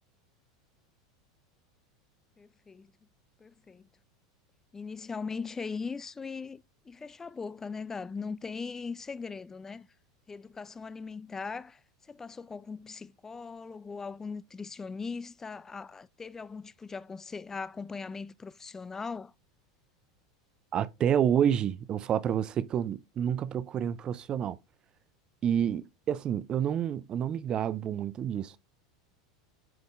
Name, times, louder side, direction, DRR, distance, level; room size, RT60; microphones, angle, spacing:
voice 1, 2.4-2.9 3.4-3.9 4.7-9.9 10.3-19.3, left 5 dB, 15° left, 0.4 m, -40 dB
voice 2, 20.7-24.6 25.4-28.6, right 9 dB, 35° right, 0.5 m, -29 dB
7.8 x 5.4 x 2.5 m
hypercardioid pair, 90°, 2 cm